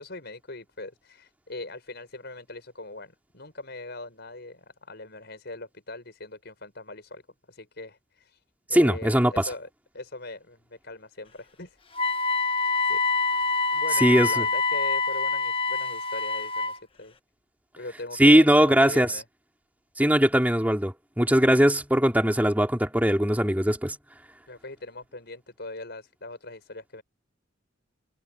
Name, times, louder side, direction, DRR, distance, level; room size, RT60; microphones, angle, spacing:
voice 1, 0.0-7.2 7.5-8.4 8.7-9.7 9.9-11.8 12.2-12.6 12.8-13.0 13.7-17.1 17.8-19.2 24.5-27.0, left 2 dB, 55° left, 6.1 m, -40 dB
voice 2, 8.7-9.5 14.0-14.4 18.2-19.1 20.0-24.0, equal, 10° right, 3.1 m, -20 dB
Wind instrument woodwind instrument, 11.9-16.8, left 4 dB, 30° left, 1.2 m, -26 dB
head